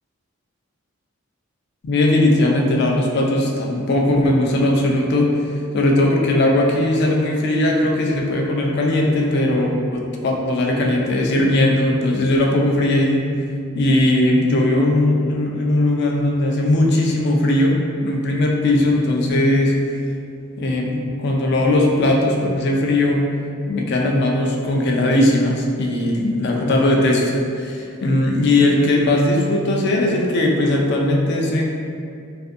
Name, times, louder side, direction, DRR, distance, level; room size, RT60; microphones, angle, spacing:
voice 1, 1.8-5.4 5.7-13.3 13.7-17.8 18.0-19.8 20.6-23.3 23.7-31.6, left 1 dB, 50° left, 0 dB, 0.3 m, -18 dB
2.5 x 2.4 x 2.4 m, 2.4 s
head